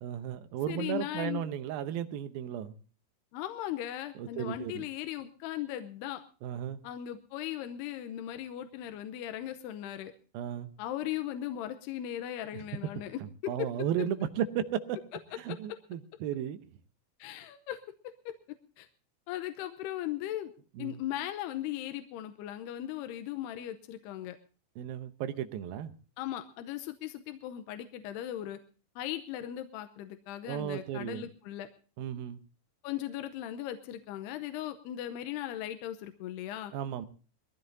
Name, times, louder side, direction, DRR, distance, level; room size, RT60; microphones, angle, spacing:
voice 1, 0.0-2.8 4.2-4.9 6.4-6.8 10.3-10.7 12.5-12.7 13.2-15.0 15.3-16.6 20.8-21.0 24.8-25.9 30.5-31.3 32.0-32.4 36.7-37.1, right 10 dB, 70° right, 10 dB, 2.5 m, -35 dB
voice 2, 0.7-1.4 3.3-6.2 6.8-10.1 10.8-13.7 17.2-17.8 18.3-18.4 18.8-18.9 19.3-20.5 20.8-24.4 26.2-28.6 29.0-31.7 32.8-36.7, left 12 dB, 80° left, 9 dB, 2.7 m, -38 dB
22.0 x 15.5 x 2.7 m, 0.36 s
omnidirectional pair, 4.9 m